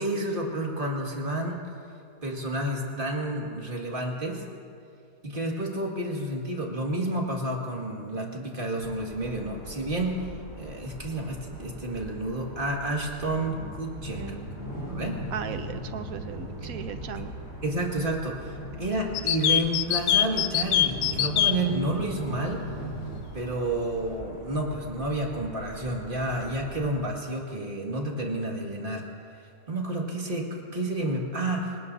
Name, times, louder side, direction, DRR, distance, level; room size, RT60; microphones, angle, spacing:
voice 1, 0.0-1.6 2.2-4.4 5.2-10.2 10.6-14.4 14.9-15.2 17.6-22.6 23.3-29.1 29.7-31.8, right 1 dB, 35° right, -1 dB, 2.3 m, -30 dB
sound 1, 8.8-27.0, equal, 10° right, 4.7 m, -45 dB
sound 2, 11.6-23.2, equal, 50° left, 3.8 m, -40 dB
voice 2, 14.1-14.5 15.3-17.3, right 7 dB, 65° right, 9 dB, 1.2 m, -37 dB
sound 3, 19.1-21.5, left 11 dB, 80° left, 1.2 m, -22 dB
27.0 x 18.5 x 2.8 m, 2.4 s
omnidirectional pair, 1.7 m